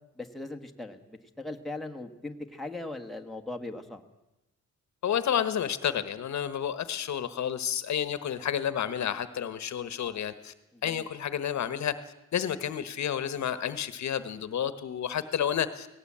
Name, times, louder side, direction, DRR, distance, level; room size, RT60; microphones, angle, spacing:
voice 1, 0.2-4.0 10.7-11.1, left 2 dB, ahead, 3 dB, 1.4 m, -39 dB
voice 2, 5.0-10.5 10.8-11.9 12.3-15.9, left 9 dB, 65° left, 13 dB, 1.1 m, -30 dB
18.0 x 17.5 x 8.6 m, 0.96 s
wide cardioid pair, 150°, 30 cm